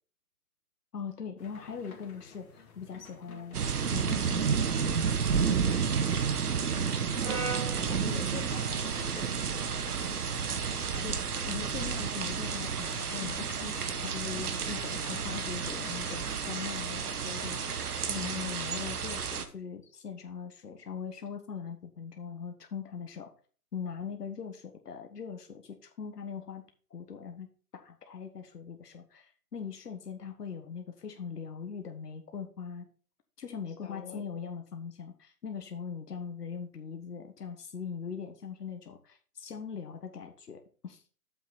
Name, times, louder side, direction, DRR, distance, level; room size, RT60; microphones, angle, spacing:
voice 1, 0.9-3.6 3.9-4.6 11.0-17.7 18.1-23.3 23.7-26.6 26.9-27.5 27.7-32.9 33.4-41.0, left 6 dB, 85° left, 5 dB, 1.4 m, -41 dB
sound 1, 1.4-19.0, left 4 dB, 60° left, 2.1 m, -51 dB
sound 2, 3.5-19.4, right 6 dB, 70° right, 1.3 m, -31 dB
voice 2, 5.2-5.9 7.4-10.6 18.1-18.5 33.8-34.3, left 6 dB, 45° left, 2 dB, 1.9 m, -45 dB
Brass instrument, 7.2-11.5, right 4 dB, 20° right, 1.2 m, -42 dB
7.8 x 6.1 x 4.1 m, 0.41 s
hypercardioid pair, 170°, 47 cm